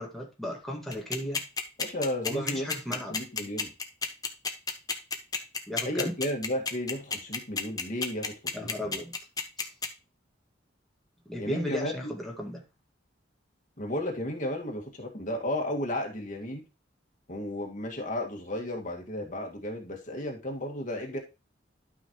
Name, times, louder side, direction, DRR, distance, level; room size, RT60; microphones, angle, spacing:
voice 1, 0.0-1.4 2.2-3.2 5.7-6.1 8.5-9.1 9.6-9.7 11.3-12.6, equal, ahead, -2 dB, 2.0 m, -35 dB
sound 1, 0.9-9.9, left 5 dB, 20° left, 1.2 m, -30 dB
voice 2, 1.8-2.7 3.1-3.7 5.9-8.9 11.4-12.2 13.8-16.6 17.3-21.2, left 1 dB, 45° left, 1 dB, 2.0 m, -33 dB
12.0 x 5.7 x 3.1 m, 0.29 s
head